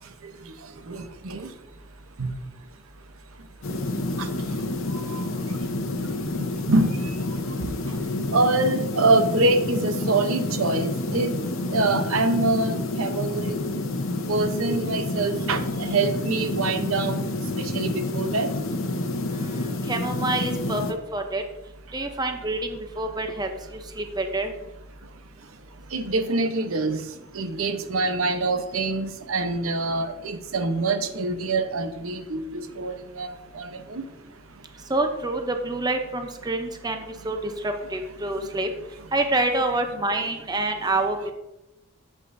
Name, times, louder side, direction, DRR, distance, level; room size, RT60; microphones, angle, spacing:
voice 1, 0.9-1.5 2.2-2.3 4.2-4.3 5.1-5.2 6.7-6.9 7.9-8.0 8.3-11.3 11.7-13.6 14.3-17.3 17.6-18.5 25.9-27.0 27.3-33.3 33.5-34.0, right 2 dB, 80° right, 7 dB, 0.9 m, -25 dB
sound 1, 3.6-20.9, left 2 dB, 70° left, 0.9 m, -29 dB
voice 2, 19.3-21.4 21.9-23.5 24.0-24.5 34.9-38.7 39.1-41.2, right 2 dB, 20° right, 5 dB, 0.7 m, -27 dB
9.9 x 7.6 x 2.7 m, 0.94 s
head